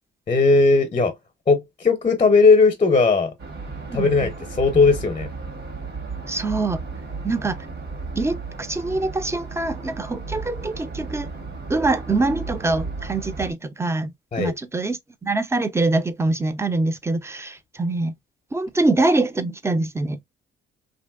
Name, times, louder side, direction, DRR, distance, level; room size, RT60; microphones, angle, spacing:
voice 1, 0.3-1.1 1.5-3.3 3.9-5.3 14.3-14.5, left 4 dB, 30° left, 0.6 m, -17 dB
sound 1, 3.4-13.5, right 4 dB, 75° right, 1.3 m, -34 dB
voice 2, 6.3-6.8 7.2-7.6 8.2-11.3 11.7-14.1 14.4-18.1 18.5-20.2, right 2 dB, 15° right, 0.4 m, -24 dB
2.9 x 2.6 x 2.2 m
cardioid pair, 90°, 20 cm